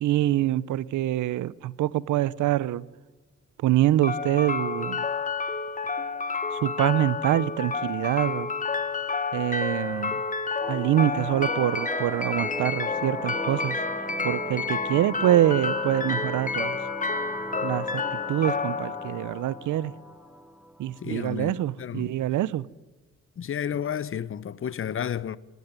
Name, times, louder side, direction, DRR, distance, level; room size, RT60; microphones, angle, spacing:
voice 1, 0.0-2.8 3.6-5.0 6.5-8.5 9.3-10.2 10.7-13.8 14.2-16.8 17.6-18.0 18.3-19.9 20.8-22.7, right 13 dB, 75° right, 0.8 m, -25 dB
sound 1, 4.0-20.0, left 4 dB, 25° left, 1.4 m, -30 dB
sound 2, 10.6-21.6, right 1 dB, 5° right, 0.9 m, -40 dB
voice 2, 21.0-22.2 23.4-25.4, left 9 dB, 45° left, 0.8 m, -32 dB
25.5 x 18.0 x 9.7 m
cardioid pair, 90°, 30 cm